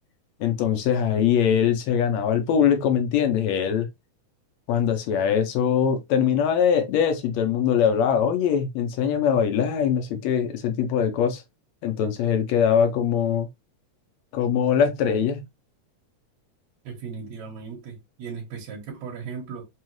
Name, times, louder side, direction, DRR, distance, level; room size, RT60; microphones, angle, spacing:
voice 1, 0.4-3.9 4.7-11.4 11.8-13.5 14.3-15.4, left 8 dB, 75° left, 1.9 m, -22 dB
voice 2, 16.9-19.6, right 6 dB, 70° right, 2.5 m, -37 dB
5.5 x 2.4 x 3.0 m
omnidirectional pair, 3.3 m